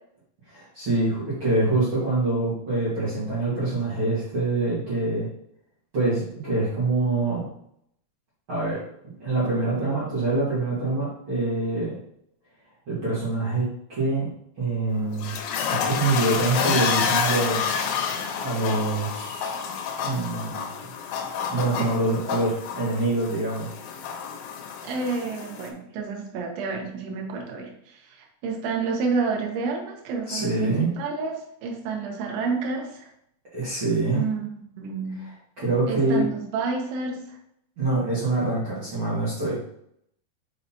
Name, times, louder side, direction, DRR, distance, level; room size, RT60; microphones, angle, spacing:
voice 1, 0.5-5.3 5.9-7.4 8.5-8.8 9.2-11.9 12.9-13.6 13.9-14.3 14.6-15.3 15.7-17.7 18.4-19.6 20.0-20.7 21.5-23.7 30.3-30.9 33.5-34.2 35.1-36.2 37.8-39.6, right 2 dB, 55° right, -10 dB, 1.5 m, -25 dB
sound 1, 14.9-25.7, left 6 dB, 90° left, 3.0 m, -29 dB
voice 2, 24.8-31.3 31.6-33.1 34.1-34.5 34.8-35.2 35.9-37.4, right 4 dB, 85° right, 1 dB, 3.3 m, -29 dB
6.5 x 5.5 x 2.9 m, 0.72 s
omnidirectional pair, 5.3 m